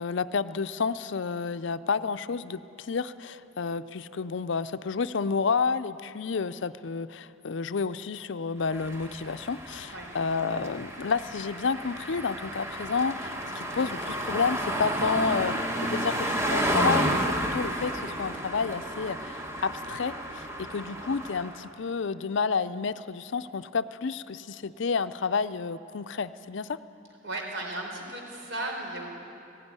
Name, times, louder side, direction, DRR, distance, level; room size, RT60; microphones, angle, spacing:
voice 1, 0.0-26.8, left 5 dB, 60° left, 13 dB, 0.5 m, -30 dB
sound 1, 8.7-21.7, right 1 dB, 15° right, 1.2 m, -31 dB
voice 2, 27.2-29.1, right 2 dB, 60° right, 1 dB, 4.2 m, -35 dB
18.0 x 16.0 x 9.6 m, 2.8 s
head